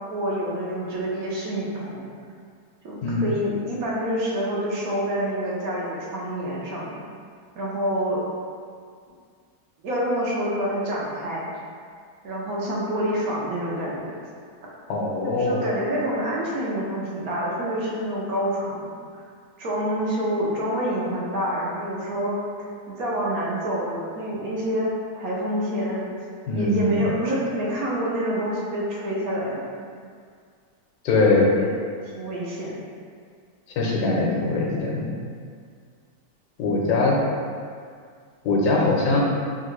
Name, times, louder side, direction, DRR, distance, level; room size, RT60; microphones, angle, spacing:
voice 1, 0.1-2.1 2.8-7.0 7.6-8.2 9.8-11.5 12.2-14.1 15.2-19.2 19.6-22.4 22.9-24.9 25.2-26.2 26.5-29.9 31.4-31.7 32.1-32.8, equal, 70° right, -5 dB, 1.0 m, -27 dB
voice 2, 14.9-15.6 26.5-27.0 31.0-31.5 33.8-35.1 36.6-37.2 38.4-39.2, left 2 dB, 90° left, -3 dB, 1.2 m, -21 dB
3.1 x 2.3 x 3.0 m, 2.1 s
omnidirectional pair, 1.7 m